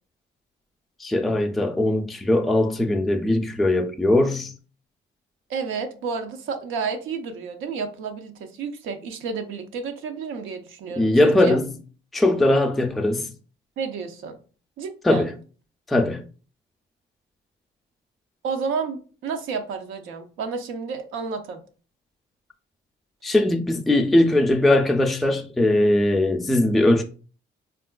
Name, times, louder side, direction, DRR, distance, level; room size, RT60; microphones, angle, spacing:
voice 1, 1.0-4.5 11.0-11.7 12.1-13.3 15.0-15.3 15.9-16.2 23.2-27.0, left 1 dB, ahead, 0.3 m, -20 dB
voice 2, 5.5-11.6 13.8-14.4 14.8-15.3 18.4-21.6, right 5 dB, 85° right, 0.5 m, -31 dB
3.5 x 2.4 x 2.2 m
cardioid pair, 90°, 20 cm